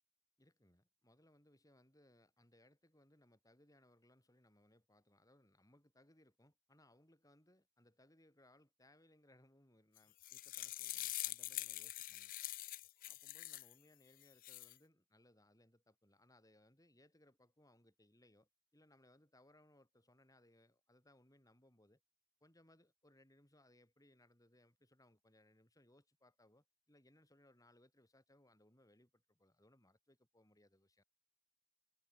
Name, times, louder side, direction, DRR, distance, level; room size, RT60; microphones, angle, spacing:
voice 1, 0.4-12.3 13.0-22.0 22.4-31.0, left 1 dB, 15° left, 6.9 m, -69 dB
sound 1, 10.0-13.7 14.2-14.7, left 17 dB, 40° left, 0.3 m, -45 dB
head